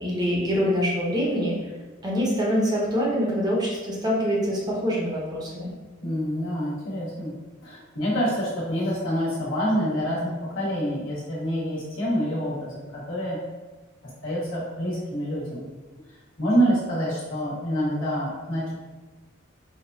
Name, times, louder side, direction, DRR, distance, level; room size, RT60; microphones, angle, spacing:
voice 1, 0.0-1.6 2.0-5.7, equal, 20° right, -4 dB, 0.7 m, -25 dB
voice 2, 6.0-7.3 7.6-13.4 14.2-15.7 16.4-18.7, equal, 70° left, -7 dB, 1.4 m, -27 dB
4.6 x 2.3 x 2.7 m, 1.2 s
head